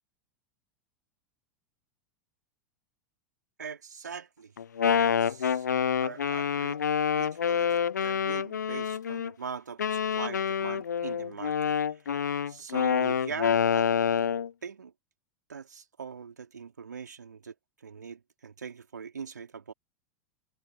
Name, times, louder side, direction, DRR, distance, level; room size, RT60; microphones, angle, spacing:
voice 1, 3.6-4.5 5.0-5.6 6.0-6.8 7.2-11.8 12.5-13.9 14.6-14.9 15.5-19.7, right 6 dB, 75° right, 3.6 m, -42 dB
Wind instrument woodwind instrument, 4.6-9.3 9.8-14.5, left 7 dB, 75° left, 0.6 m, -27 dB
figure-of-eight pair, 85°, 10 cm